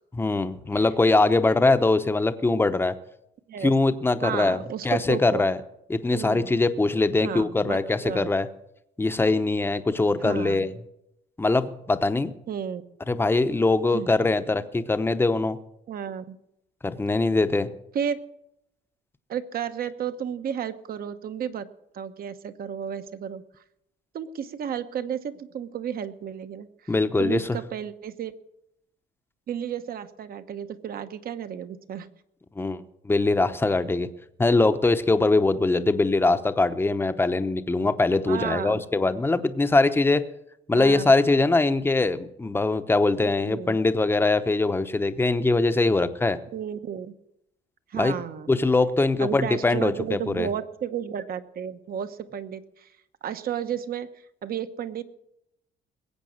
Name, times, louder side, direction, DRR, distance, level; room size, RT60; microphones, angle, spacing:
voice 1, 0.2-2.9 3.6-5.6 5.9-8.5 9.0-10.7 11.4-12.3 13.1-15.6 16.8-17.7 26.9-27.6 32.6-34.1 34.4-40.2 40.7-46.4 47.9-48.2 48.5-50.5, left 3 dB, 10° left, 10 dB, 0.9 m, -22 dB
voice 2, 4.2-5.5 6.1-6.5 7.2-8.3 10.2-10.7 12.5-12.8 13.9-14.1 15.9-16.4 17.9-18.2 19.3-21.7 21.9-23.4 24.1-26.9 27.2-28.3 29.5-32.1 38.3-38.8 40.7-41.1 43.4-43.8 46.5-47.1 47.9-48.5 49.2-52.9 53.2-54.1 54.4-55.0, right 8 dB, 50° right, 10 dB, 1.1 m, -32 dB
20.5 x 8.4 x 6.5 m, 0.80 s
cardioid pair, 130°, 20 cm